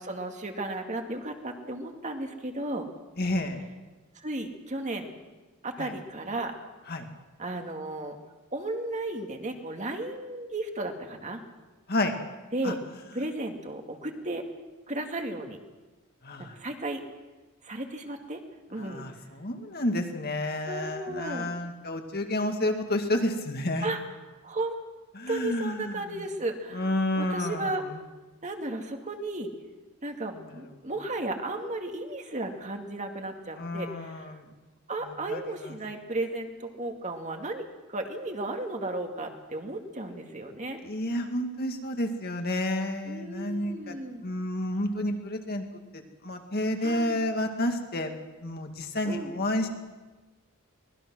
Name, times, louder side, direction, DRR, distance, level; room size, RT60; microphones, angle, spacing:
voice 1, 0.0-2.9 4.2-5.1 5.6-6.5 7.4-8.2 8.5-11.4 12.5-12.8 13.1-14.5 14.9-15.6 16.5-17.0 17.6-18.4 18.7-19.0 20.7-21.5 23.8-24.0 24.4-24.8 25.3-27.8 28.4-29.5 30.0-34.3 34.9-40.8 43.0-44.2 46.8-47.2 49.1-49.3, right 2 dB, 35° right, 4 dB, 2.1 m, -34 dB
voice 2, 3.2-3.6 5.8-5.9 6.9-7.1 11.9-12.2 12.6-12.7 16.2-16.5 18.8-23.9 25.1-26.2 26.7-28.0 30.3-30.9 33.5-34.5 35.1-35.8 40.8-45.6 45.9-49.7, left 1 dB, 45° left, 5 dB, 2.1 m, -30 dB
24.0 x 19.5 x 6.2 m, 1.2 s
head